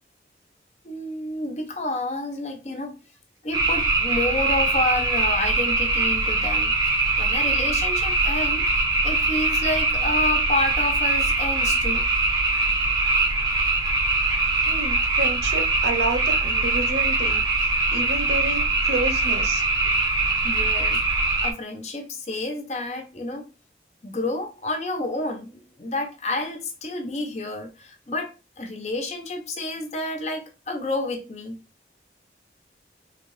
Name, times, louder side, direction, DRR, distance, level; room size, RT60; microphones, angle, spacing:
voice 1, 0.8-2.9 3.4-6.7 7.2-8.6 9.0-12.1 20.4-21.0 21.4-23.5 24.0-31.6, left 2 dB, 40° left, 0.7 m, -29 dB
sound 1, 3.5-21.5, right 3 dB, 20° right, 0.6 m, -22 dB
voice 2, 14.7-17.4 17.9-19.6, right 2 dB, 75° right, 0.8 m, -29 dB
3.8 x 2.7 x 3.2 m
head